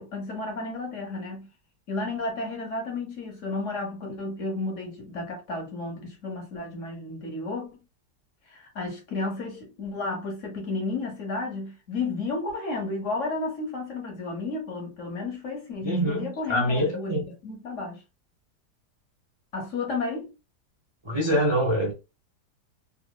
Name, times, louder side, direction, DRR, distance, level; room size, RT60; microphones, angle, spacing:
voice 1, 0.0-1.5 1.9-7.7 8.5-18.0 19.5-20.3, left 3 dB, 60° left, 0.9 m, -32 dB
voice 2, 15.8-17.2 21.0-21.9, equal, 40° right, 0.4 m, -25 dB
2.9 x 2.5 x 2.2 m
omnidirectional pair, 1.8 m